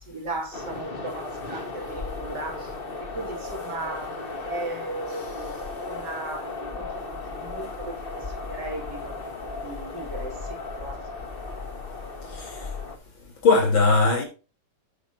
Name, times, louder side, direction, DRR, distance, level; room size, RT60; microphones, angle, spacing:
voice 1, 0.1-9.3 9.6-11.4, right 2 dB, 55° right, 3.3 m, -37 dB
sound 1, 0.5-13.0, left 3 dB, 30° left, 1.5 m, -35 dB
voice 2, 12.3-12.7 13.4-14.2, left 3 dB, 70° left, 4.3 m, -20 dB
9.9 x 9.2 x 2.7 m
omnidirectional pair, 2.2 m